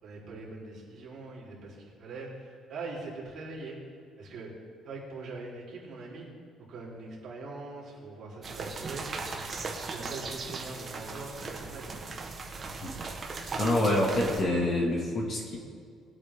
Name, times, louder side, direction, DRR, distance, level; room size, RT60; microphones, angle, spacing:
voice 1, 0.0-3.8 4.2-4.5 4.8-6.3 6.7-9.4 9.9-12.1, right 3 dB, 50° right, -5 dB, 3.9 m, -42 dB
sound 1, 8.4-14.4, right 4 dB, 30° right, 1.4 m, -38 dB
voice 2, 13.6-15.6, left 1 dB, 35° left, -1 dB, 2.2 m, -26 dB
21.5 x 8.5 x 3.8 m, 2.2 s
cardioid pair, 160°, 0 cm